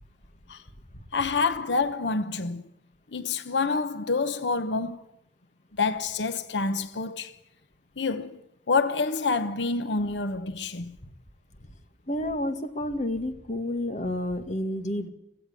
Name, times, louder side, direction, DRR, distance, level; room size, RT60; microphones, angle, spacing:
voice 1, 1.1-2.6 3.1-5.0 5.8-7.3 8.0-8.4 8.7-11.0, left 4 dB, 90° left, 0.9 m, -27 dB
voice 2, 12.1-15.1, left 1 dB, 45° left, 2.0 m, -30 dB
17.5 x 15.5 x 9.8 m
head